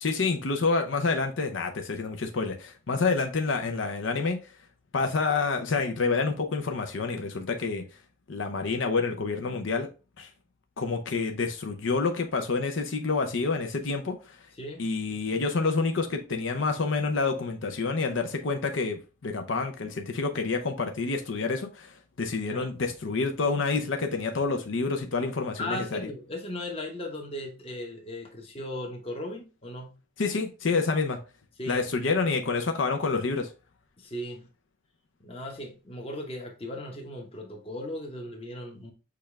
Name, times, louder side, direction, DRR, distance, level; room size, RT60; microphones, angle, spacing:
voice 1, 0.0-4.4 4.9-7.8 8.3-9.9 10.2-10.3 10.8-14.2 14.8-26.1 30.2-31.2 31.7-33.5, left 4 dB, 75° left, 0.6 m, -28 dB
voice 2, 25.6-30.0 31.6-31.9 34.0-34.5 35.2-38.9, left 1 dB, 30° left, 0.9 m, -37 dB
6.7 x 2.4 x 3.2 m
head